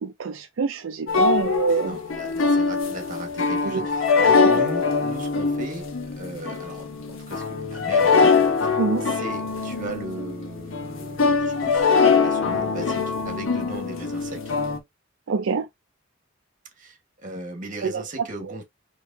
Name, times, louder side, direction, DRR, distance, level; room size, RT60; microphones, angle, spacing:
voice 1, 0.0-2.0 3.6-3.9 4.4-4.6 8.8-9.1 15.3-15.7 17.8-18.0, right 5 dB, 75° right, 0.4 m, -25 dB
sound 1, 1.1-14.8, left 4 dB, 85° left, 1.0 m, -23 dB
voice 2, 1.7-5.9 6.2-8.7 9.0-14.5 16.8-18.6, right 2 dB, 40° right, 1.4 m, -38 dB
4.5 x 3.0 x 2.7 m
head